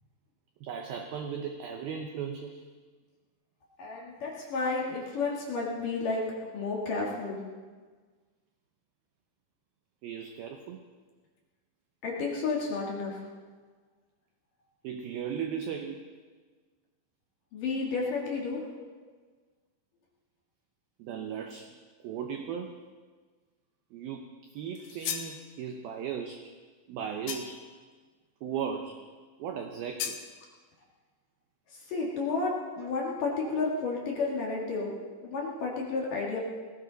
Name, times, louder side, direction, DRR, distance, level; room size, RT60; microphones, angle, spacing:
voice 1, 0.6-2.7 10.0-10.8 14.8-16.1 21.0-21.7 22.0-22.7 23.9-26.4 26.9-27.6 28.4-29.0 29.4-30.2, right 7 dB, 85° right, 4 dB, 2.1 m, -37 dB
voice 2, 3.8-6.2 6.5-7.4 12.0-13.2 17.5-18.6 31.9-32.5 32.8-34.9 35.2-36.4, left 4 dB, 55° left, -3 dB, 2.9 m, -31 dB
sound 1, 24.8-25.4 27.3-27.7 30.0-30.3, left 9 dB, 75° left, 3.0 m, -36 dB
19.0 x 16.5 x 4.0 m, 1.5 s
omnidirectional pair, 5.5 m